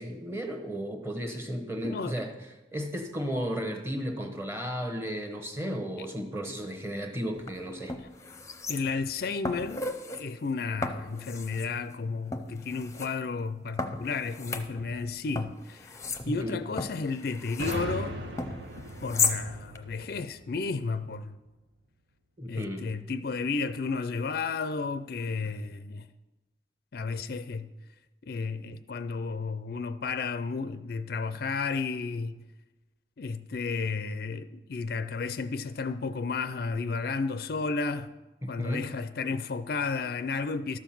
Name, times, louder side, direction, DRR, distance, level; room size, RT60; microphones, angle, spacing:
voice 1, 0.0-2.3 2.7-8.0 16.2-16.6 22.4-22.9 38.4-38.9, equal, 15° right, 1.1 m, -34 dB
voice 2, 1.8-2.1 6.0-6.1 8.0-8.1 8.7-16.0 16.3-18.2 19.0-21.4 22.5-26.1 26.9-27.7 28.2-32.4 33.2-38.1 38.5-40.8, left 4 dB, 55° left, 0.4 m, -32 dB
sound 1, 7.3-7.5 7.9-9.1 9.4-10.2 10.8-11.7 12.3-13.1 13.8-15.1 15.4-17.8 18.4-19.4 19.7-19.8, left 4 dB, 15° left, 0.7 m, -34 dB
sound 2, 17.6-21.3, right 2 dB, 75° right, 1.2 m, -38 dB
13.0 x 7.1 x 5.9 m
head